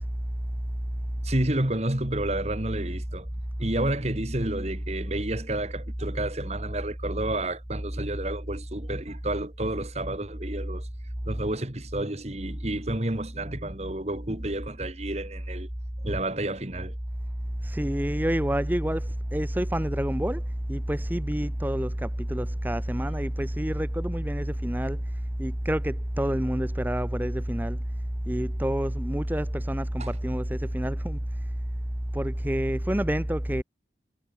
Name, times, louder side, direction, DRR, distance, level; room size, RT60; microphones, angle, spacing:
voice 1, 1.2-3.3 3.6-10.9 11.3-15.7 16.0-16.9 30.0-30.1, right 1 dB, 35° right, 2.1 m, -30 dB
voice 2, 17.6-20.4 20.7-25.0 25.4-27.8 28.3-31.2 32.1-33.6, equal, 10° right, 0.8 m, -27 dB
head